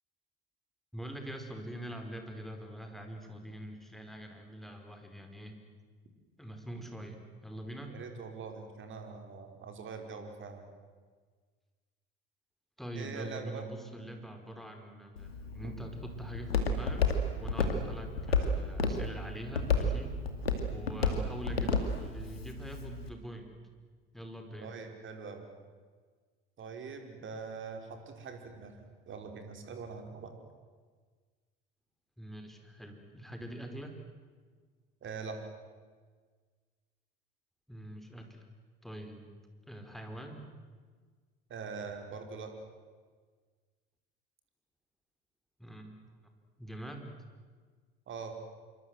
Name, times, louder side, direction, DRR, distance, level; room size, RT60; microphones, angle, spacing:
voice 1, 0.9-5.5 6.4-8.0 12.8-17.1 17.4-20.1 20.7-23.5 24.1-24.7 32.2-34.0 37.7-38.4 38.8-39.3 39.7-40.5 45.6-46.3 46.6-47.1, right 1 dB, ahead, 4 dB, 5.0 m, -44 dB
voice 2, 7.9-10.7 12.9-13.6 15.6-15.8 24.6-25.5 26.6-30.3 35.0-35.4 41.5-42.5 48.1-48.4, right 5 dB, 40° right, 5 dB, 5.0 m, -43 dB
Walk footsteps, 15.2-23.1, left 3 dB, 85° left, 2.6 m, -32 dB
26.5 x 24.5 x 8.0 m, 1.5 s
figure-of-eight pair, 60°, 29 cm